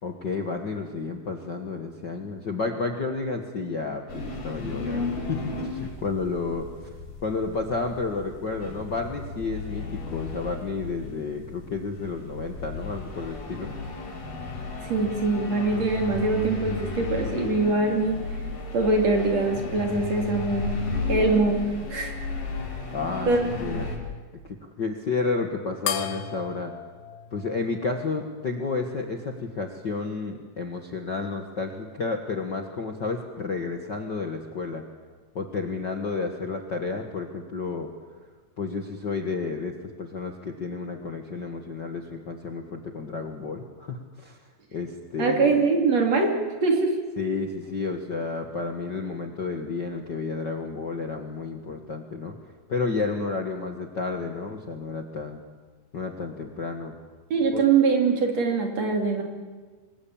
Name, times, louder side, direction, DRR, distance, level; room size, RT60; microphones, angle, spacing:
voice 1, 0.0-6.7 7.2-13.7 22.9-23.3 23.6-24.1 24.4-26.7 27.3-34.8 35.3-37.9 38.6-44.4 44.7-45.6 47.2-52.3 52.7-55.4 55.9-56.9 57.5-57.7, left 4 dB, 45° left, 3 dB, 1.5 m, -31 dB
sound 1, 4.1-24.0, left 3 dB, 65° left, 6.1 m, -34 dB
voice 2, 14.8-18.3 18.7-20.7 21.1-22.2 23.3-23.4 23.7-23.8 45.2-46.4 46.6-47.0 57.3-59.2, right 3 dB, 45° right, 2 dB, 3.9 m, -23 dB
sound 2, 25.9-28.7, left 9 dB, 80° left, 2.9 m, -35 dB
26.0 x 21.5 x 8.8 m, 1.4 s
omnidirectional pair, 4.2 m